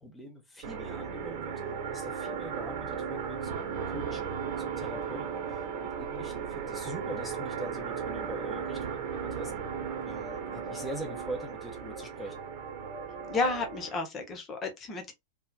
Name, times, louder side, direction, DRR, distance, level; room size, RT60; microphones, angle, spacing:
voice 1, 0.0-1.5 1.9-9.5 10.0-12.4, right 1 dB, 5° left, 1.4 m, -43 dB
sound 1, 0.6-14.0, right 6 dB, 45° right, 1.3 m, -36 dB
voice 2, 13.3-15.1, left 3 dB, 25° left, 1.3 m, -32 dB
4.3 x 3.4 x 2.3 m
figure-of-eight pair, 90°, 0 cm